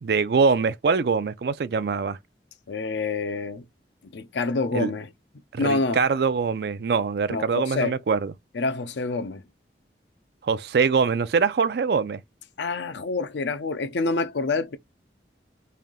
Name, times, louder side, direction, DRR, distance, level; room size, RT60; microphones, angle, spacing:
voice 1, 0.0-2.2 4.7-4.9 5.5-8.3 10.4-12.2, right 5 dB, 65° right, 0.4 m, -23 dB
voice 2, 2.7-3.6 4.0-5.1 5.6-6.0 7.3-8.0 8.5-9.4 12.6-14.8, left 3 dB, 85° left, 0.6 m, -27 dB
3.3 x 2.6 x 3.7 m
head